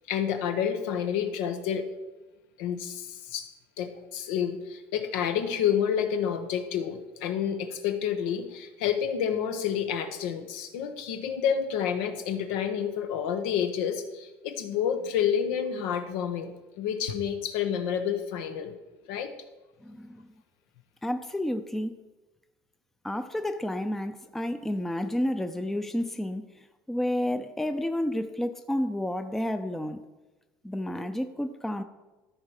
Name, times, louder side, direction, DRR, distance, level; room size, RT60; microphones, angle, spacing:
voice 1, 0.1-1.9 2.6-3.5 3.8-16.5 16.8-18.8 19.1-19.3, left 8 dB, 85° left, 7 dB, 1.2 m, -29 dB
voice 2, 19.8-20.2 21.0-22.0 23.0-26.6 26.9-30.0 30.6-31.8, left 1 dB, 5° left, 8 dB, 0.5 m, -30 dB
13.0 x 4.7 x 6.5 m, 1.1 s
cardioid pair, 125°, 6 cm